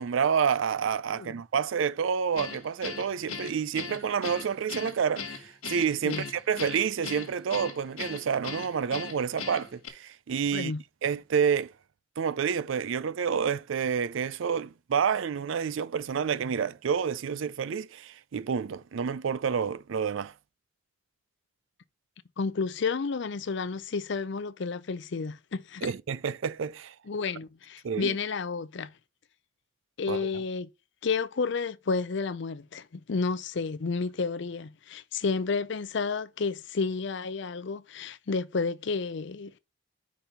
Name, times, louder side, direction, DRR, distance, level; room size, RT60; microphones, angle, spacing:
voice 1, 0.0-10.7 11.0-11.7 12.2-20.3 25.8-26.9 27.8-28.2 30.1-30.3, right 7 dB, 65° right, 0.4 m, -29 dB
Guitar, 2.4-9.9, left 5 dB, 85° left, 1.6 m, -39 dB
voice 2, 22.4-25.9 27.1-28.9 30.0-30.7 31.0-39.6, left 4 dB, 55° left, 0.5 m, -31 dB
5.2 x 4.4 x 5.6 m
head